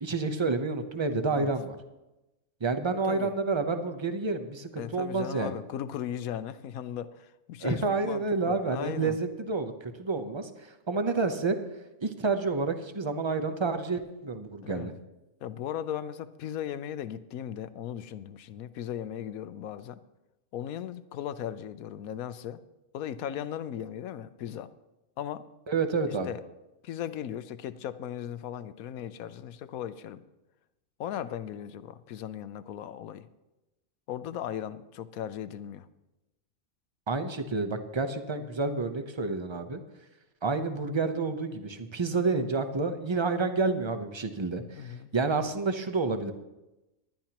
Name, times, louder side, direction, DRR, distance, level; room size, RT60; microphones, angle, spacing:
voice 1, 0.0-1.8 2.6-5.6 7.6-11.6 12.0-14.9 25.7-26.3 37.1-39.8 40.4-46.3, right 3 dB, 25° right, 8 dB, 0.7 m, -29 dB
voice 2, 4.8-9.2 14.6-14.9 15.4-20.0 20.5-22.6 22.9-24.7 25.2-25.5 26.1-26.4 26.8-30.2 31.0-33.3 34.1-35.9 44.8-45.1, left 10 dB, 85° left, 13 dB, 1.1 m, -37 dB
19.5 x 11.5 x 3.0 m, 1.0 s
omnidirectional pair, 1.4 m